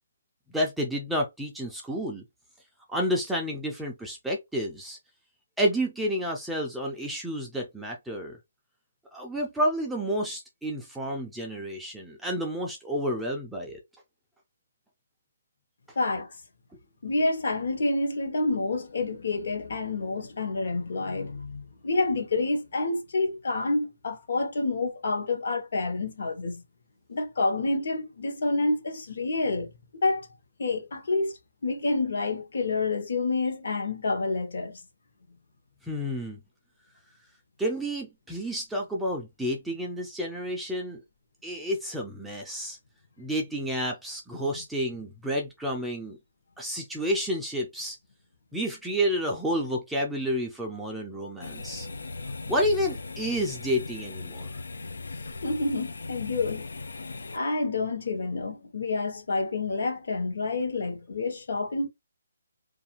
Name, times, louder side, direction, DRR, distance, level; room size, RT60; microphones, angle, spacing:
voice 1, 0.5-2.2 2.9-5.0 5.6-8.4 9.1-13.8 35.8-36.4 37.6-41.0 41.4-42.8 43.2-46.2 46.6-48.0 48.5-51.9 52.5-54.5, equal, ahead, 0.3 m, -30 dB
voice 2, 16.0-16.3 17.0-26.6 27.1-29.7 30.0-30.3 30.6-31.3 31.6-34.8 44.4-44.6 55.4-56.6 57.3-61.9, left 3 dB, 55° left, 0.8 m, -28 dB
sound 1, 51.4-57.4, left 3 dB, 80° left, 0.4 m, -38 dB
2.5 x 2.4 x 2.9 m
hypercardioid pair, 170°, 0 cm